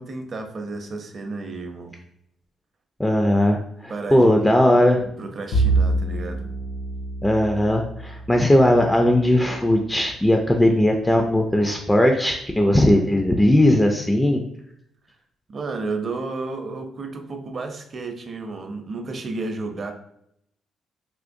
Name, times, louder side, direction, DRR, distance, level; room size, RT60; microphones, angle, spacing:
voice 1, 0.0-2.0 3.9-6.5 15.5-19.9, right 3 dB, 45° right, 4 dB, 0.6 m, -32 dB
voice 2, 3.0-5.0 7.2-14.4, left 1 dB, 10° left, 2 dB, 0.4 m, -18 dB
Bowed string instrument, 5.5-10.1, right 2 dB, 75° left, 0.5 m, -27 dB
3.6 x 2.8 x 2.6 m, 0.73 s
cardioid pair, 90°, 0 cm